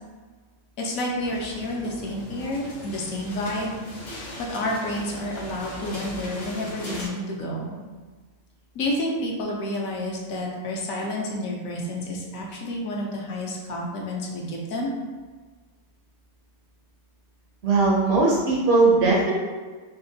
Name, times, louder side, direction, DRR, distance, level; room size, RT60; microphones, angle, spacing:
voice 1, 0.8-3.8 4.4-7.7 8.7-14.9, left 1 dB, 70° left, -2 dB, 1.1 m, -30 dB
sound 1, 1.1-7.1, left 1 dB, 40° left, 0.7 m, -39 dB
voice 2, 17.6-19.4, right 3 dB, 65° right, -4 dB, 0.7 m, -19 dB
3.4 x 2.8 x 2.6 m, 1.4 s
omnidirectional pair, 1.5 m